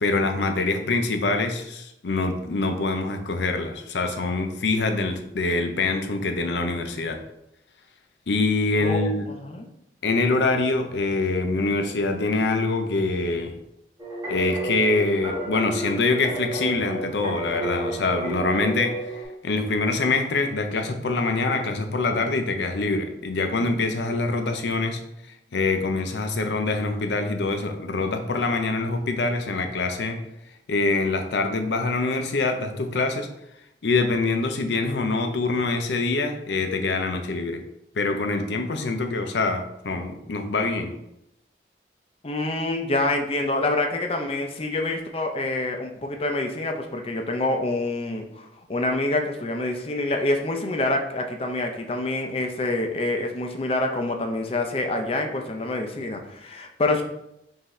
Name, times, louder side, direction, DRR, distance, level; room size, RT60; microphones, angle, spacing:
voice 1, 0.0-7.2 8.3-9.3 10.0-13.5 14.3-19.0 19.4-25.0 25.5-30.2 30.7-33.3 33.8-37.6 37.9-40.9, left 3 dB, 80° left, 6 dB, 0.6 m, -25 dB
voice 2, 8.8-9.1 9.4-9.7 42.2-57.0, left 2 dB, 35° left, 4 dB, 0.5 m, -26 dB
sound 1, 14.0-19.2, right 2 dB, 20° right, 1.4 m, -31 dB
5.5 x 2.7 x 3.1 m, 0.83 s
head